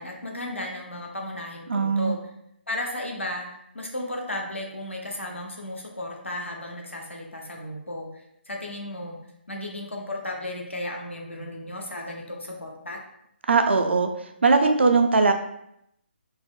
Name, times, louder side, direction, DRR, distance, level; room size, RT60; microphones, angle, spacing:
voice 1, 0.0-2.2 2.7-9.2 9.5-13.0, left 1 dB, 90° left, 0 dB, 0.7 m, -34 dB
voice 2, 1.7-2.2 13.5-14.1 14.4-15.3, right 4 dB, 70° right, 6 dB, 0.4 m, -20 dB
4.0 x 2.0 x 2.3 m, 0.77 s
figure-of-eight pair, 145°, 6 cm